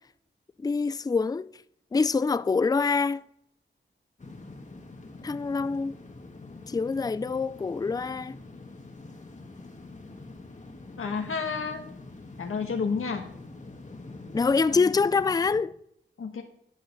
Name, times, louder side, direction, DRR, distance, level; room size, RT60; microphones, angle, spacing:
voice 1, 0.6-1.5 1.9-3.2 5.2-6.0 6.7-8.4 14.3-15.7, left 4 dB, 20° left, 0.3 m, -25 dB
sound 1, 4.2-15.6, left 2 dB, 35° left, 1.4 m, -45 dB
voice 2, 11.0-11.8 12.4-13.2 14.7-14.8 16.2-16.4, left 5 dB, 85° left, 1.5 m, -30 dB
11.0 x 5.1 x 6.6 m
wide cardioid pair, 70°, 21 cm